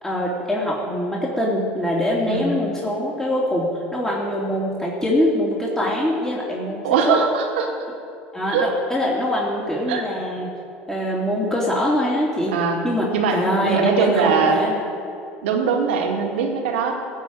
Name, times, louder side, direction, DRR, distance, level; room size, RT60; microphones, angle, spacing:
voice 1, 0.0-7.2 8.3-10.5 10.9-14.8, left 1 dB, 10° left, -4 dB, 2.8 m, -23 dB
voice 2, 6.8-7.7 8.5-8.7 9.9-10.0 12.5-12.8 13.1-14.6 15.4-16.9, right 5 dB, 80° right, 2 dB, 2.0 m, -21 dB
16.0 x 5.6 x 8.8 m, 2.7 s
hypercardioid pair, 75°, 6 cm